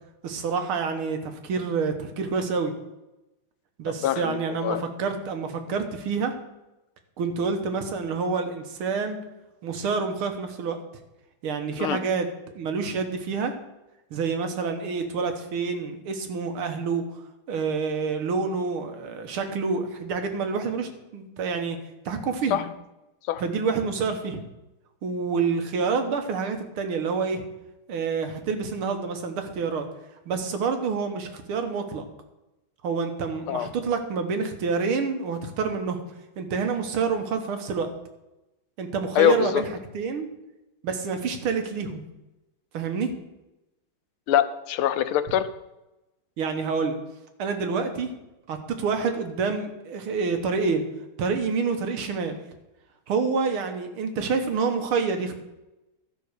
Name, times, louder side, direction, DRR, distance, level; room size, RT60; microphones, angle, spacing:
voice 1, 0.2-2.7 3.8-6.3 7.2-9.2 9.6-10.8 11.4-12.3 12.6-13.5 14.1-21.8 22.1-22.6 23.4-24.4 25.0-27.4 27.9-29.8 30.3-32.1 32.8-36.0 36.4-37.9 38.8-39.7 39.9-40.3 40.8-42.0 42.7-43.2 46.4-47.0 47.4-48.1 48.5-50.8 51.2-52.4 53.1-55.4, right 5 dB, 80° right, 6 dB, 2.1 m, -27 dB
voice 2, 4.0-4.4 4.6-4.8 11.8-12.0 22.5-22.6 23.3-23.4 33.5-33.7 39.2-39.6 44.3-45.5, left 11 dB, 80° left, 12 dB, 1.6 m, -23 dB
13.0 x 5.9 x 6.6 m, 0.97 s
omnidirectional pair, 2.3 m